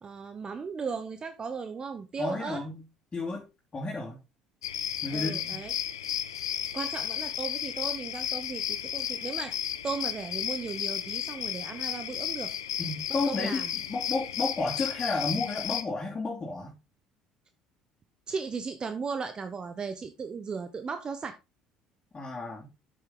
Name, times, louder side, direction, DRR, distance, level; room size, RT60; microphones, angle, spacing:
voice 1, 0.0-2.6 5.1-5.7 6.7-9.6 9.8-12.5 13.1-13.7 18.3-21.3, right 5 dB, 35° right, 9 dB, 1.1 m, -36 dB
voice 2, 2.2-2.8 3.1-3.4 3.7-4.2 5.0-5.4 12.8-16.8 22.1-22.7, left 3 dB, 30° left, -4 dB, 3.2 m, -32 dB
sound 1, 4.6-15.8, left 10 dB, 85° left, 0.7 m, -33 dB
8.0 x 7.9 x 3.8 m, 0.26 s
hypercardioid pair, 60°, 2 cm